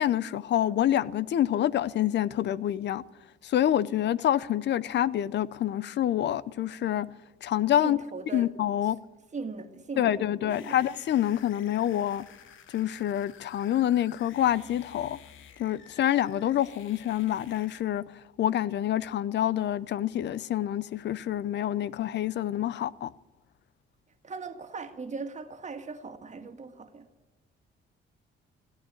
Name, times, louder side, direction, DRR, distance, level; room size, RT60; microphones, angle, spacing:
voice 1, 0.0-3.0 3.4-7.1 7.4-8.0 8.3-9.0 10.0-12.2 12.7-15.2 15.6-18.0 18.4-23.1, left 11 dB, 60° left, 0.6 m, -27 dB
voice 2, 7.8-8.5 8.8-8.9 9.3-10.8 24.2-27.1, right 4 dB, 35° right, 1.9 m, -39 dB
sound 1, 10.5-17.8, left 8 dB, 80° left, 1.3 m, -52 dB
15.5 x 9.1 x 9.5 m
cardioid pair, 90°, 20 cm